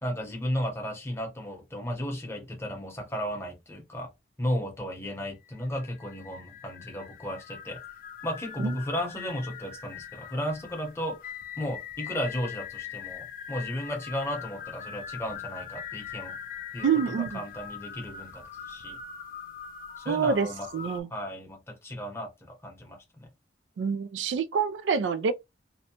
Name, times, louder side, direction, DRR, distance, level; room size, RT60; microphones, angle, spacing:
voice 1, 0.0-4.1 4.4-7.8 8.2-16.4 16.7-16.9 17.2-19.0 20.0-20.7 21.1-23.3, equal, 15° left, 0.8 m, -34 dB
sound 1, 5.3-21.0, left 8 dB, 50° left, 0.3 m, -42 dB
voice 2, 16.8-17.4 20.1-20.5 20.7-21.1 23.8-25.3, right 6 dB, 90° right, 0.3 m, -26 dB
2.6 x 2.1 x 2.7 m
head